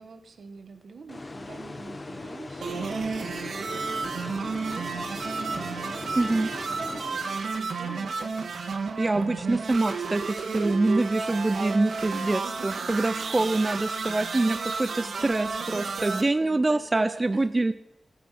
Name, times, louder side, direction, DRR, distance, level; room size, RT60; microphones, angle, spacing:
voice 1, 0.0-9.7 10.4-10.8 12.1-13.5 14.4-17.7, right 4 dB, 70° right, 7 dB, 1.8 m, -44 dB
sound 1, 1.1-7.8, left 2 dB, 30° left, 1.0 m, -39 dB
sound 2, 2.6-16.2, right 4 dB, 85° right, 1.8 m, -32 dB
voice 2, 6.2-6.5 9.0-17.7, right 2 dB, 25° right, 12 dB, 0.5 m, -25 dB
15.0 x 9.3 x 7.8 m, 0.89 s
wide cardioid pair, 115°, 0 cm